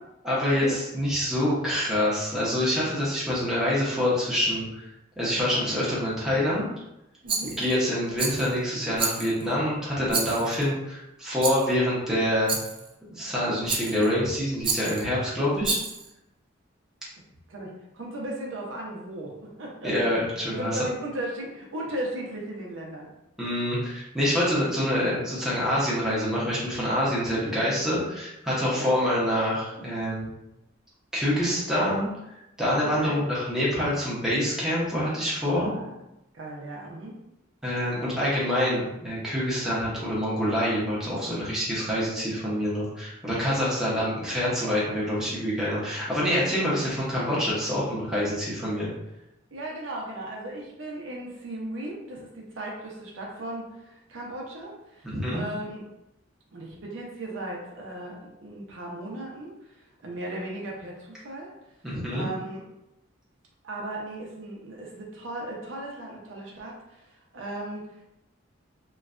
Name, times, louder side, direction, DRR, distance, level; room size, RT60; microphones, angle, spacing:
voice 1, 0.2-4.9 5.2-6.7 7.6-12.6 13.1-15.8 19.8-20.8 23.4-30.3 31.1-35.7 37.6-48.9 55.0-55.4 61.8-62.3, equal, 5° right, -8 dB, 0.8 m, -26 dB
voice 2, 7.2-7.6 17.5-20.1 20.5-23.1 28.7-28.9 33.0-33.2 35.5-36.0 36.3-37.2 49.5-55.8 56.5-61.5 62.1-62.6 63.6-68.0, right 1 dB, 75° right, -2 dB, 0.7 m, -37 dB
Rattle, 7.3-7.8 8.2-8.5 9.0-9.5 10.1-10.7 11.4-11.7 12.5-12.9 13.7-14.1 14.6-15.1 15.6-16.1, right 4 dB, 25° right, 0.3 m, -30 dB
3.1 x 2.2 x 2.4 m, 0.89 s
head